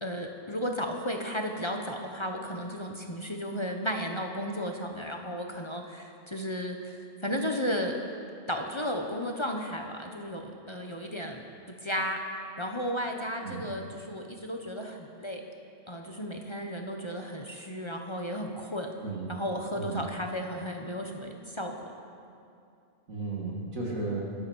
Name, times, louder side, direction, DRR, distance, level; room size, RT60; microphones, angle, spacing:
voice 1, 0.0-8.0 8.5-11.4 11.8-12.2 12.6-15.4 15.9-18.9 19.3-21.7, equal, 20° left, 2 dB, 1.0 m, -34 dB
voice 2, 19.0-19.3 19.7-20.0 23.1-24.2, right 3 dB, 75° right, -3 dB, 2.5 m, -34 dB
24.5 x 8.6 x 6.3 m, 2.5 s
omnidirectional pair, 1.4 m